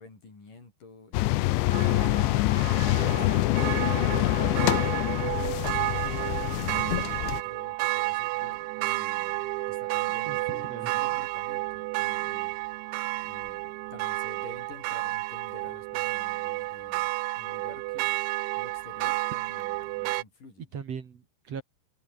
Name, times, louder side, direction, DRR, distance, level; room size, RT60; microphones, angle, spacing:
voice 1, 0.0-4.0 4.3-6.9 7.2-9.4 9.7-12.5 13.2-17.1 17.4-18.1 18.6-20.6, left 3 dB, 45° left, 9.1 m, -49 dB
sound 1, 1.1-7.4, left 19 dB, 80° left, 3.1 m, -25 dB
sound 2, 1.7-20.2, right 22 dB, 85° right, 2.9 m, -31 dB
voice 2, 10.2-11.2 20.6-21.6, right 7 dB, 45° right, 2.6 m, -39 dB
omnidirectional pair, 5.3 m